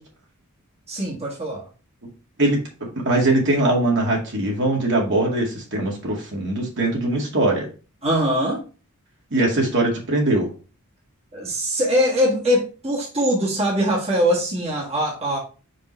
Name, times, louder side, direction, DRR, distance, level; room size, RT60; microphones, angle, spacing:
voice 1, 0.9-1.6 8.0-8.6 11.3-15.4, equal, 30° right, 1.6 m, -22 dB
voice 2, 3.0-7.7 9.3-10.5, right 2 dB, 55° right, 2.1 m, -21 dB
5.6 x 5.2 x 3.2 m
head